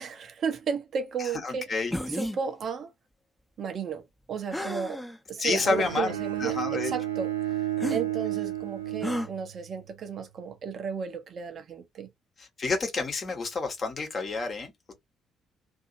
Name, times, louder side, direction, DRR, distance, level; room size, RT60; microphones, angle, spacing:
voice 1, 0.0-1.7 2.1-2.9 3.6-4.0 4.3-5.0 5.3-12.1, right 6 dB, 50° right, 0.7 m, -34 dB
voice 2, 1.2-1.9 5.4-6.1 6.4-6.9 12.4-14.9, left 4 dB, 40° left, 1.1 m, -29 dB
sound 1, 1.9-2.4 4.5-5.2 5.8-5.9 7.8-8.0 9.0-9.3, left 1 dB, 10° left, 0.7 m, -32 dB
Bowed string instrument, 5.6-9.8, right 13 dB, 85° right, 0.4 m, -32 dB
2.7 x 2.6 x 2.5 m
figure-of-eight pair, 45°, 0 cm